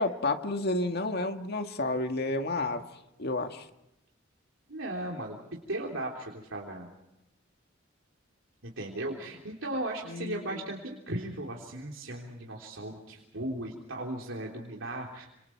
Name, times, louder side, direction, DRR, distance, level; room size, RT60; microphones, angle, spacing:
voice 1, 0.0-2.8 3.2-3.7 10.1-10.6, left 2 dB, 55° left, 6 dB, 1.9 m, -31 dB
voice 2, 4.7-5.4 5.7-6.9 8.6-15.3, right 1 dB, 75° right, -1 dB, 3.5 m, -37 dB
29.5 x 27.0 x 4.7 m, 0.89 s
head